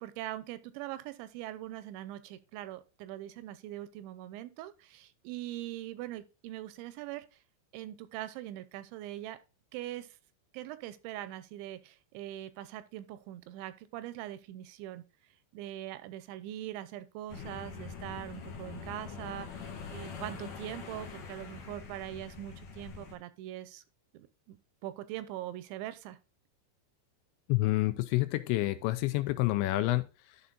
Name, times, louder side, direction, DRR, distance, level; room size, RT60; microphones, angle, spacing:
voice 1, 0.0-7.4 7.7-9.4 9.7-10.2 10.5-15.0 15.5-23.8 24.1-24.6 24.8-26.2, right 13 dB, 85° right, 2.8 m, -42 dB
sound 1, 17.3-23.1, left 6 dB, 70° left, 1.8 m, -44 dB
voice 2, 27.5-30.4, left 17 dB, 85° left, 2.7 m, -29 dB
11.0 x 4.2 x 3.8 m
omnidirectional pair, 5.4 m